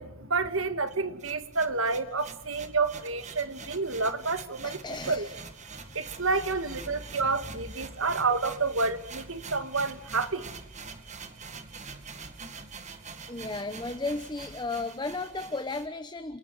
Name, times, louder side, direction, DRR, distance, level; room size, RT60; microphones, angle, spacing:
voice 1, 0.0-4.8 5.1-5.3 6.0-10.5, right 3 dB, 60° right, 10 dB, 1.9 m, -29 dB
sound 1, 0.9-15.9, right 4 dB, 35° right, 2.1 m, -45 dB
voice 2, 4.6-5.4 6.0-6.3 6.9-7.2 13.3-16.4, left 3 dB, 20° left, 10 dB, 0.9 m, -35 dB
28.5 x 28.0 x 4.9 m, 0.77 s
head